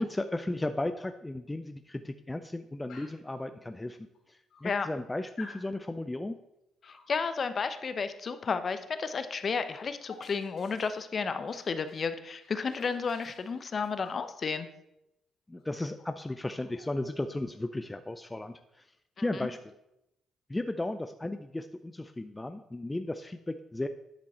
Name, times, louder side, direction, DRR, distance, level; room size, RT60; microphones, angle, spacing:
voice 1, 0.0-4.0 4.6-6.3 15.5-18.5 19.2-19.6 20.5-23.9, left 2 dB, 15° left, 9 dB, 0.4 m, -35 dB
Dog, 2.9-3.3 4.1-4.2 4.5-5.0 5.4-5.7 6.8-7.1 8.9-9.1 9.4-12.1 12.4-14.3 15.5-15.7 16.0-16.1 16.4-17.7, left 4 dB, 70° left, 3.1 m, -53 dB
voice 2, 6.8-14.7 19.2-19.5, left 5 dB, 45° left, 10 dB, 0.7 m, -32 dB
10.5 x 5.2 x 4.2 m, 0.87 s
cardioid pair, 90°, 0 cm